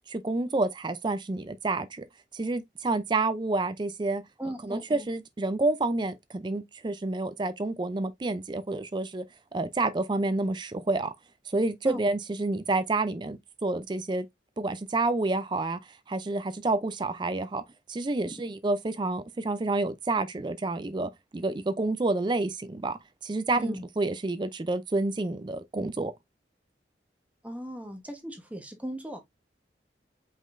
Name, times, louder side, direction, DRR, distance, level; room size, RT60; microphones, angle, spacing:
voice 1, 0.1-2.1 2.3-4.2 4.6-9.2 9.5-11.1 11.5-14.3 14.6-15.8 16.1-17.6 17.9-26.1, right 2 dB, 25° right, 0.4 m, -29 dB
voice 2, 4.4-5.1 11.8-12.0 18.2-18.4 23.6-23.8 27.4-29.2, right 1 dB, 10° right, 1.0 m, -37 dB
5.1 x 3.8 x 2.5 m
head